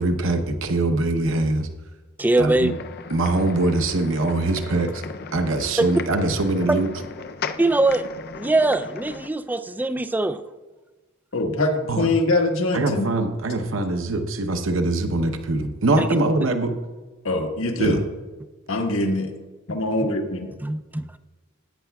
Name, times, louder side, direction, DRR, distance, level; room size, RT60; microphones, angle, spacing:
voice 1, 0.0-1.7 2.4-2.7 3.1-5.0 5.3-6.9 11.9-12.1 12.7-16.8 17.8-18.0, right 2 dB, 65° right, 6 dB, 0.7 m, -23 dB
voice 2, 2.2-2.7 7.6-8.0 8.4-10.4 16.0-16.2 20.6-21.2, right 2 dB, 10° right, 11 dB, 0.3 m, -22 dB
sound 1, 2.6-9.3, left 5 dB, 50° left, 0.5 m, -37 dB
voice 3, 11.3-13.1 17.2-18.0 18.7-19.3 19.7-20.5, left 2 dB, 75° left, 2 dB, 1.4 m, -23 dB
16.0 x 9.0 x 2.3 m, 1.3 s
head